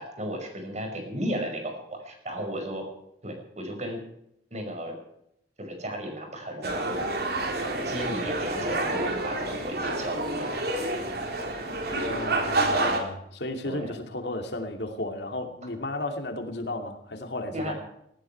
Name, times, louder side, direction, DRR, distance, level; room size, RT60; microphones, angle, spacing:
voice 1, 0.0-2.9 3.2-4.0 4.5-5.0 5.6-7.0 7.8-10.7 13.6-14.0 17.5-17.7, equal, 40° right, 4 dB, 5.5 m, -34 dB
sound 1, 6.6-13.0, right 2 dB, 65° right, 3.5 m, -28 dB
voice 2, 11.9-17.7, left 2 dB, 70° left, 5 dB, 2.6 m, -34 dB
18.5 x 14.5 x 4.6 m, 0.76 s
head